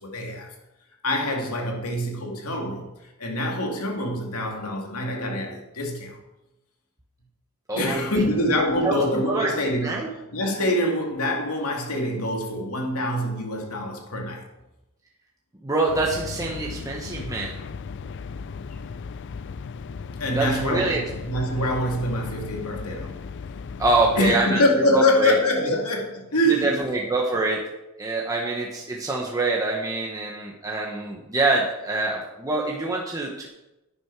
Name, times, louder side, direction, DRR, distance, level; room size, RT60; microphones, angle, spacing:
voice 1, 0.0-0.5 1.0-6.2 7.7-10.0 10.3-14.5 17.1-17.4 18.0-18.1 20.2-23.2 24.2-26.8, left 1 dB, 80° left, 1 dB, 2.4 m, -25 dB
voice 2, 7.7-8.4 8.8-9.5 9.8-10.1 15.6-17.6 20.3-21.0 23.8-24.6 24.9-25.3 25.6-25.7 26.4-27.7 28.0-33.5, right 2 dB, 15° right, -2 dB, 1.2 m, -25 dB
sound 1, 15.9-24.5, left 5 dB, 55° left, 0.4 m, -36 dB
11.0 x 9.7 x 4.7 m, 0.97 s
head